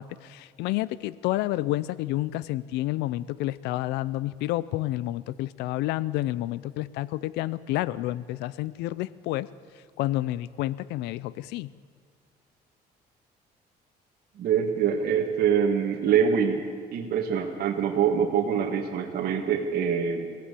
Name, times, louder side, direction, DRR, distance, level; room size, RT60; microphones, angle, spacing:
voice 1, 0.0-9.5 10.0-11.7, left 16 dB, 90° left, 19 dB, 0.5 m, -29 dB
voice 2, 14.4-16.6 16.9-20.3, right 7 dB, 65° right, 0 dB, 2.0 m, -24 dB
23.0 x 16.5 x 8.5 m, 2.1 s
cardioid pair, 110°, 17 cm